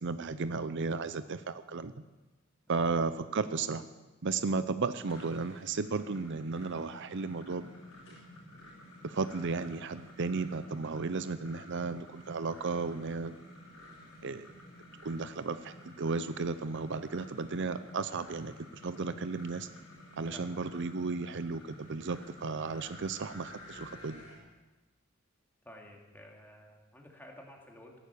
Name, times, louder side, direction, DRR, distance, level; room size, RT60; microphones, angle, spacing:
voice 1, 0.0-1.9 2.7-3.8 4.2-7.7 9.0-13.4 14.2-14.5 15.0-19.7 20.2-24.2, right 4 dB, 55° right, 12 dB, 0.6 m, -34 dB
sound 1, 5.0-24.4, left 1 dB, 75° left, 6.9 m, -52 dB
voice 2, 20.2-20.6 25.6-28.0, equal, 10° left, 0 dB, 2.6 m, -51 dB
15.0 x 11.5 x 8.4 m, 1.2 s
head